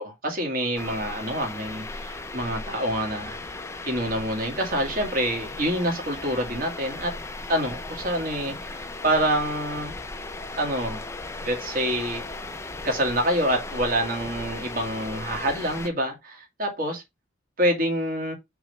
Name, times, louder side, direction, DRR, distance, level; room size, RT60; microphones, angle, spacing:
voice 1, 0.0-3.6 3.8-7.1 7.5-9.9 10.6-11.0 11.4-12.2 12.8-17.0 17.6-18.3, right 1 dB, 45° right, 2.2 m, -27 dB
sound 1, 0.7-15.9, left 2 dB, 15° left, 0.6 m, -37 dB
5.9 x 3.5 x 5.4 m
head